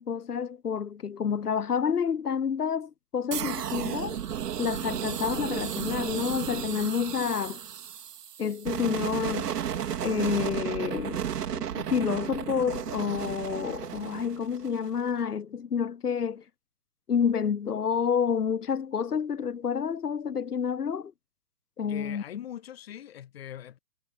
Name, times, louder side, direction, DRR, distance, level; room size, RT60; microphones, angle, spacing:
voice 1, 0.0-4.2 4.6-7.6 8.4-9.6 10.0-11.2 11.5-16.4 17.1-21.1 21.8-22.2, left 7 dB, 75° left, 3.9 m, -29 dB
sound 1, 3.3-15.1, right 9 dB, 80° right, 1.1 m, -34 dB
voice 2, 21.9-23.8, left 10 dB, 40° left, 2.3 m, -42 dB
hypercardioid pair, 165°, 47 cm